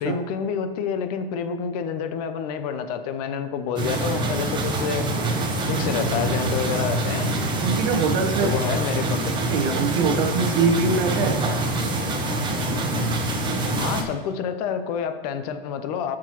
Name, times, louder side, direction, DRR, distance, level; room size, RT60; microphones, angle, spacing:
voice 1, 0.0-5.1 5.7-7.3 8.4-9.3 13.8-16.2, left 7 dB, 40° left, 9 dB, 0.8 m, -28 dB
sound 1, 3.8-14.0, right 1 dB, 15° right, 0.9 m, -25 dB
voice 2, 7.6-8.5 9.5-11.4, right 5 dB, 40° right, 2 dB, 0.9 m, -23 dB
14.0 x 6.2 x 3.0 m, 1.3 s
hypercardioid pair, 135°, 30 cm